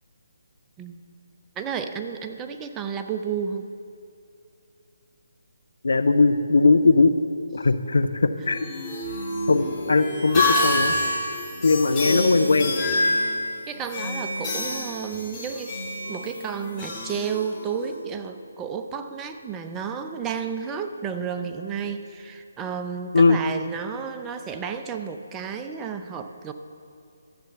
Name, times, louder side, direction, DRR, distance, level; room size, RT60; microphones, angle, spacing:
voice 1, 1.6-3.7 13.7-15.8 16.1-26.5, right 6 dB, 15° right, 7 dB, 0.6 m, -32 dB
voice 2, 5.8-7.1 7.5-8.7 9.5-10.9 11.6-12.8 23.1-23.4, left 3 dB, 70° left, 10 dB, 0.7 m, -19 dB
sound 1, 8.4-18.0, left 1 dB, 20° left, 3.1 m, -27 dB
13.0 x 7.7 x 7.0 m, 2.5 s
figure-of-eight pair, 145°, 0 cm